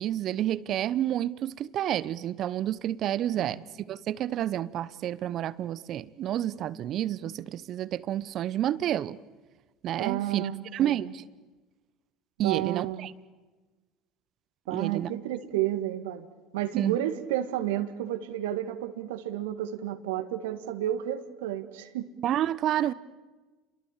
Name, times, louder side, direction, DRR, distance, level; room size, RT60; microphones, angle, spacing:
voice 1, 0.0-3.6 3.9-9.2 9.8-10.4 10.7-11.2 12.4-13.1 14.7-15.1 16.7-17.0 22.2-22.9, right 12 dB, 55° right, 0.9 m, -29 dB
voice 2, 10.0-11.1 12.4-13.1 14.7-16.3 16.5-22.1 22.8-22.9, right 12 dB, 75° right, 1.8 m, -31 dB
30.0 x 22.5 x 7.4 m
hypercardioid pair, 70°, 0 cm